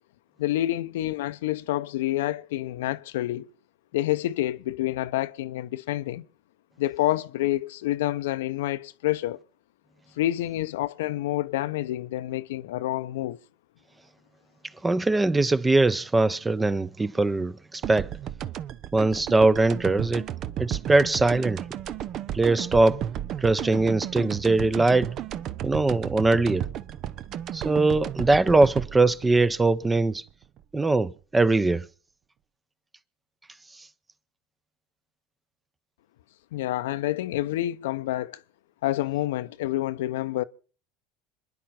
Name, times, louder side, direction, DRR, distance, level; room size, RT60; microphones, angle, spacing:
voice 1, 0.4-3.5 3.9-6.2 6.8-9.4 10.2-13.4 36.5-38.4 38.8-40.4, left 15 dB, 75° left, 0.7 m, -28 dB
voice 2, 14.8-18.1 18.9-20.3 20.6-21.6 22.3-23.0 23.4-25.1 25.6-26.7 27.5-30.2 30.7-31.9, right 2 dB, 15° right, 0.8 m, -21 dB
sound 1, 17.8-30.6, right 11 dB, 50° right, 0.8 m, -34 dB
27.0 x 10.5 x 4.4 m
hypercardioid pair, 80°, 0 cm